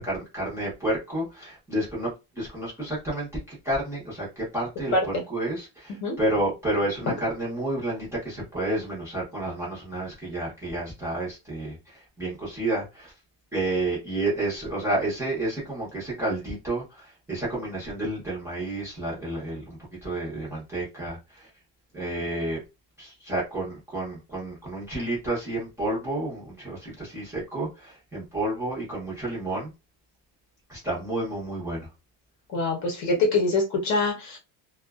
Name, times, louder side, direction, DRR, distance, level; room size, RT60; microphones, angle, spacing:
voice 1, 0.0-2.1 2.4-13.1 13.5-21.5 21.9-22.6 23.0-29.7 30.7-31.9, right 1 dB, 5° right, 0.8 m, -30 dB
voice 2, 4.9-5.2 6.0-6.1 32.5-34.4, left 2 dB, 40° left, 0.8 m, -24 dB
2.4 x 2.3 x 2.3 m
cardioid pair, 175°, 45 cm